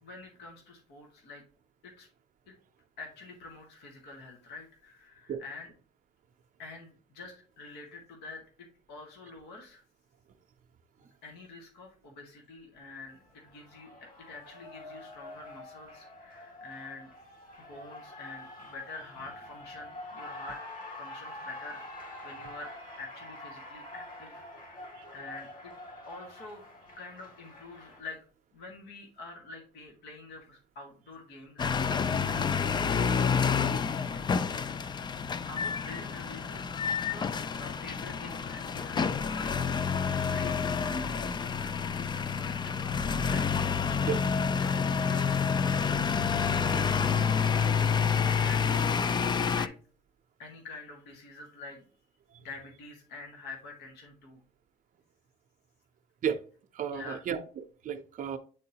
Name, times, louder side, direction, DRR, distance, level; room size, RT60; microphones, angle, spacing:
voice 1, 0.0-1.4 1.8-2.1 2.5-2.6 3.0-5.7 6.6-9.8 11.0-17.1 17.7-20.6 21.0-22.7 23.0-25.8 26.1-26.6 27.0-28.2 28.5-33.0 33.4-35.2 35.5-39.7 40.0-43.5 44.6-45.3 45.6-46.1 46.4-47.7 48.1-49.7 50.4-51.8 52.4-54.4 56.9-57.2, left 3 dB, 80° left, 1.9 m, -47 dB
Cheering, 12.8-28.0, left 1 dB, 55° left, 2.8 m, -46 dB
sound 1, 31.6-49.7, left 6 dB, 25° left, 0.4 m, -28 dB
voice 2, 56.7-58.4, right 8 dB, 50° right, 0.7 m, -34 dB
8.8 x 3.8 x 2.8 m
cardioid pair, 110°, 17 cm